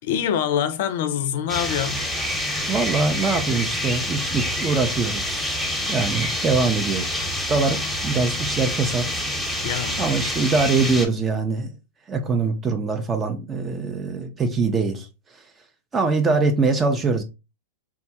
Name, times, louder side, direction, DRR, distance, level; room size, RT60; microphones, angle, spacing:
voice 1, 0.0-2.1 9.6-10.2, left 9 dB, 55° left, 0.4 m, -25 dB
sound 1, 1.5-11.1, left 1 dB, 5° left, 0.8 m, -27 dB
voice 2, 2.7-5.6 5.9-7.1 7.5-9.5 10.0-11.7 12.1-15.1 15.3-15.4 15.9-17.2, right 4 dB, 20° right, 0.4 m, -23 dB
3.4 x 2.2 x 2.7 m
hypercardioid pair, 100°, 0 cm